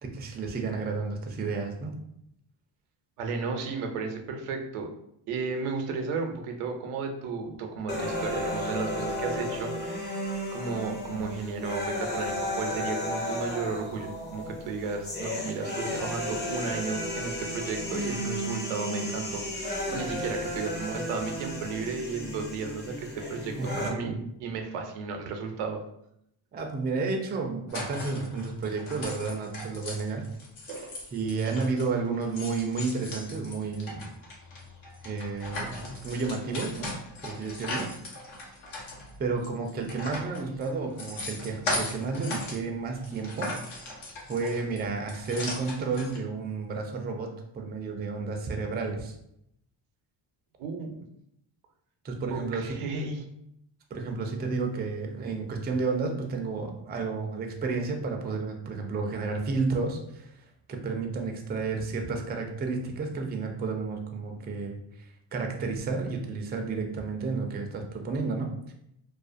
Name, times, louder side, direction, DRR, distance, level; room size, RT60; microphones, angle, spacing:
voice 1, 0.0-2.0 23.6-24.3 26.5-30.2 31.1-34.0 35.0-35.7 36.0-36.9 37.2-37.8 39.2-43.5 44.3-49.2 52.0-52.8 53.9-64.8 65.3-68.7, right 4 dB, 20° right, 3 dB, 0.4 m, -31 dB
voice 2, 3.2-4.9 5.3-25.8 30.7-30.9 50.6-51.0 52.3-53.2, right 4 dB, 90° right, 4 dB, 0.6 m, -34 dB
sound 1, 7.9-23.9, equal, 20° left, 0.6 m, -33 dB
sound 2, 27.7-31.9 32.2-42.6 42.9-46.2, left 2 dB, 70° left, 0.9 m, -38 dB
2.4 x 2.1 x 2.5 m, 0.76 s
cardioid pair, 80°, 50 cm